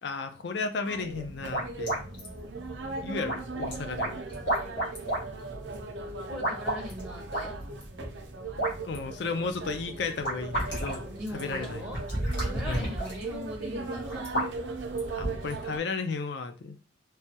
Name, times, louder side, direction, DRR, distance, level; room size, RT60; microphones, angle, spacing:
voice 1, 0.0-2.0 3.0-4.2 8.8-11.9 12.7-12.9 15.1-16.8, left 4 dB, 65° left, 0.4 m, -34 dB
sound 1, 0.8-15.8, right 3 dB, 75° right, 0.5 m, -39 dB
sound 2, 1.1-15.7, right 1 dB, 85° left, 1.4 m, -34 dB
voice 2, 6.2-7.6 11.1-12.0 12.4-14.3, equal, 5° right, 0.6 m, -40 dB
3.2 x 2.2 x 2.8 m
head